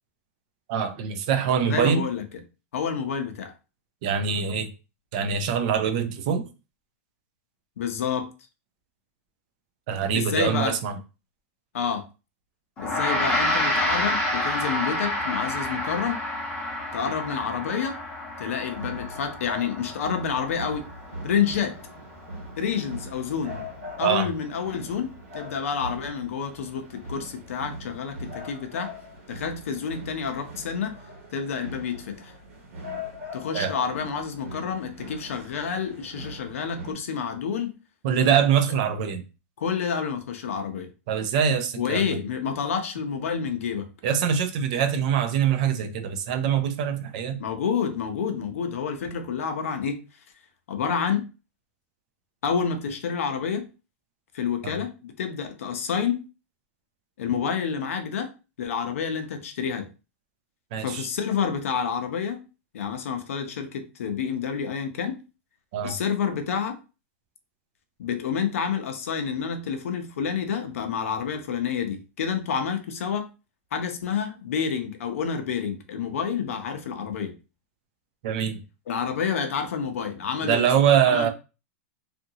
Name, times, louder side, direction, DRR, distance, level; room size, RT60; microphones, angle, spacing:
voice 1, 0.7-2.1 4.0-4.7 5.1-6.5 9.9-10.9 24.0-24.3 33.5-33.7 38.0-39.2 41.1-42.1 44.0-47.4 54.6-54.8 60.7-61.1 65.7-66.0 78.2-78.6 80.4-81.3, right 7 dB, 30° right, 0.3 m, -24 dB
voice 2, 1.7-2.3 2.7-3.5 7.8-8.3 10.1-10.8 11.7-12.1 12.8-16.2 16.9-18.0 18.4-20.9 21.2-21.8 22.6-23.6 24.0-28.9 29.3-31.0 31.3-32.3 33.3-37.7 39.6-40.9 41.8-43.9 47.4-50.0 50.7-51.3 52.4-53.7 54.3-56.3 57.2-58.3 58.6-59.9 60.8-62.5 62.7-65.2 65.8-66.8 68.0-73.3 73.7-77.4 78.9-80.7 81.1-81.3, left 7 dB, 70° left, 0.6 m, -29 dB
Gong, 12.8-22.4, left 1 dB, 15° left, 0.7 m, -29 dB
sound 1, 18.7-36.9, left 1 dB, 60° right, 1.5 m, -41 dB
2.8 x 2.5 x 2.7 m
supercardioid pair, 180°, 8 cm